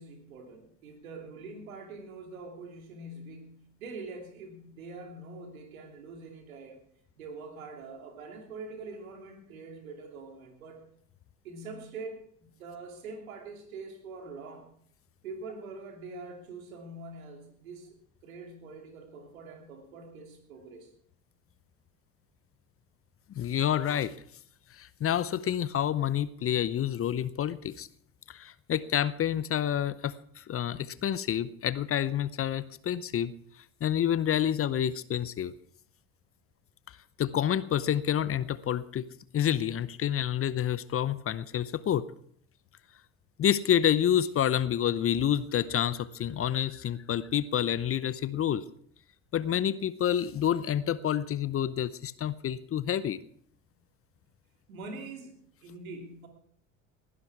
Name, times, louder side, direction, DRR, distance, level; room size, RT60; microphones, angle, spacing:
voice 1, 0.0-6.8 7.2-10.8 11.4-14.7 15.2-17.9 18.2-20.9 54.7-56.3, right 3 dB, 80° right, 3 dB, 3.0 m, -44 dB
voice 2, 23.4-24.1 24.8-27.9 28.3-33.3 33.8-35.5 37.2-39.1 39.3-42.0 43.4-48.6 49.3-53.2, left 10 dB, 35° left, 17 dB, 0.7 m, -28 dB
19.0 x 11.5 x 4.8 m, 0.62 s
hypercardioid pair, 65°, 41 cm